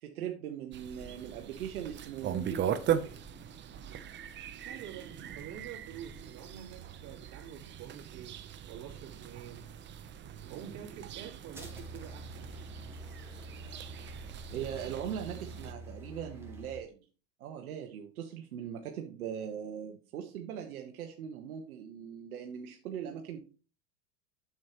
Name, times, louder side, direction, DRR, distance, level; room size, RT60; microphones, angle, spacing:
voice 1, 0.0-3.2 14.5-17.0 17.4-23.4, right 9 dB, 80° right, 3 dB, 1.4 m, -40 dB
sound 1, 0.7-15.7, right 9 dB, 25° right, 0.7 m, -40 dB
voice 2, 4.6-8.4 8.7-9.7 10.5-12.5, right 9 dB, 40° right, -2 dB, 3.2 m, -47 dB
sound 2, 11.5-16.8, right 1 dB, 5° right, 2.1 m, -46 dB
8.7 x 7.5 x 3.0 m, 0.35 s
hypercardioid pair, 110°, 43 cm